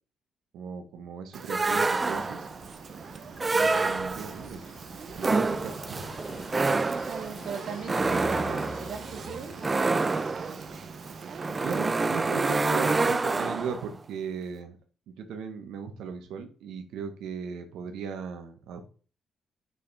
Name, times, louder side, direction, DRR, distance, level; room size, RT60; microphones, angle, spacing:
voice 1, 0.5-2.4 3.5-4.7 5.1-6.1 6.7-6.8 11.5-14.8 15.1-18.8, right 6 dB, 90° right, 6 dB, 1.2 m, -37 dB
Fire, 1.3-13.1, right 6 dB, 50° right, 0.8 m, -43 dB
sound 1, 1.5-2.6 3.4-4.4 5.2-13.9, right 3 dB, 25° right, 0.4 m, -27 dB
sound 2, 1.8-13.7, left 4 dB, 85° left, 1.4 m, -49 dB
voice 2, 6.9-10.7, right 6 dB, 65° right, 8 dB, 1.0 m, -40 dB
6.1 x 5.7 x 3.5 m, 0.38 s
cardioid pair, 95°, 0 cm